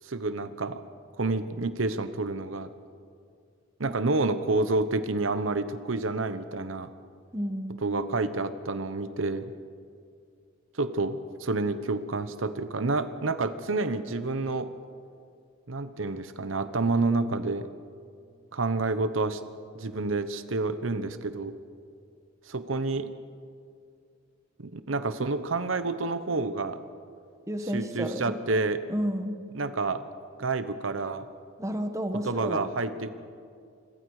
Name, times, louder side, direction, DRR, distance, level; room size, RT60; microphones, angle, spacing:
voice 1, 0.0-0.8 1.2-2.7 3.8-6.9 7.8-9.5 10.8-14.7 15.7-17.7 18.5-19.4 19.7-21.5 22.5-23.1 24.6-26.8 27.7-28.8 29.5-30.0 30.4-31.3 32.2-33.1, right 3 dB, 85° right, 12 dB, 1.0 m, -29 dB
voice 2, 7.3-8.0 27.5-28.3 28.9-29.4 31.6-32.6, equal, 15° right, 7 dB, 1.4 m, -31 dB
27.5 x 22.0 x 4.9 m, 2.3 s
head